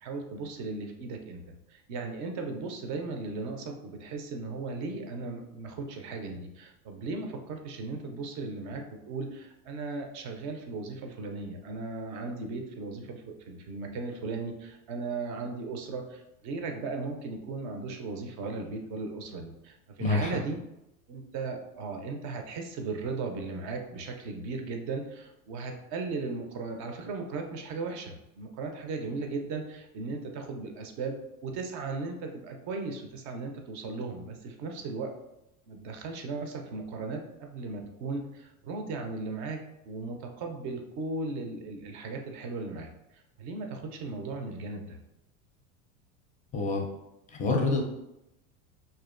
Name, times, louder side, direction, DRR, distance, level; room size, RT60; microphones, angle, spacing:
voice 1, 0.0-1.4 1.7-20.6 21.1-31.1 31.4-35.1 35.7-39.6 39.8-45.0, right 3 dB, 40° right, 4 dB, 0.5 m, -37 dB
voice 2, 20.0-20.3 46.5-46.9 47.4-47.8, left 3 dB, 20° left, 1 dB, 0.5 m, -26 dB
2.6 x 2.2 x 2.4 m, 0.87 s
hypercardioid pair, 100°, 44 cm